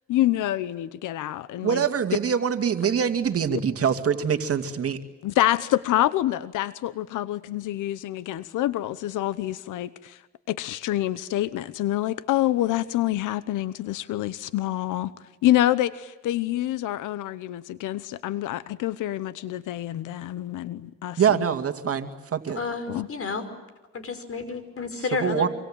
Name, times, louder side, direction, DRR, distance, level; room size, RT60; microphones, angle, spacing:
voice 1, 0.1-1.8 3.5-3.6 5.2-10.2 10.5-15.1 15.4-21.4 22.9-23.1, left 14 dB, 85° left, 16 dB, 1.0 m, -26 dB
voice 2, 1.6-5.0 21.2-22.6 25.2-25.5, right 7 dB, 50° right, 7 dB, 2.4 m, -24 dB
voice 3, 22.6-23.4 23.9-25.5, left 4 dB, 50° left, 11 dB, 5.4 m, -31 dB
26.0 x 25.5 x 9.0 m, 1.1 s
cardioid pair, 90°, 30 cm